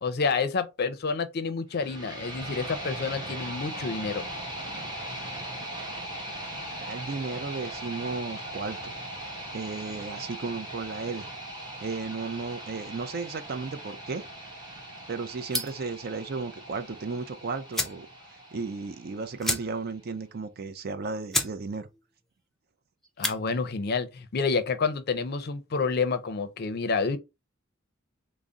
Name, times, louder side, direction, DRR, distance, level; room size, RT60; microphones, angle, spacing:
voice 1, 0.0-4.2 23.2-27.2, left 4 dB, 50° left, 0.5 m, -29 dB
sound 1, 1.7-19.7, right 1 dB, 20° right, 1.2 m, -39 dB
voice 2, 6.8-8.9 9.5-11.3 11.8-14.2 15.1-18.1 18.5-21.9, right 4 dB, 50° right, 0.5 m, -34 dB
sound 2, 15.5-15.9 17.2-17.3 17.7-18.1 18.4-18.5 18.7-18.9 19.4-20.0 20.3-20.4 20.9-21.0 21.3-21.6 21.9-22.3 23.0-23.4, left 1 dB, ahead, 0.5 m, -30 dB
3.8 x 2.0 x 3.5 m
head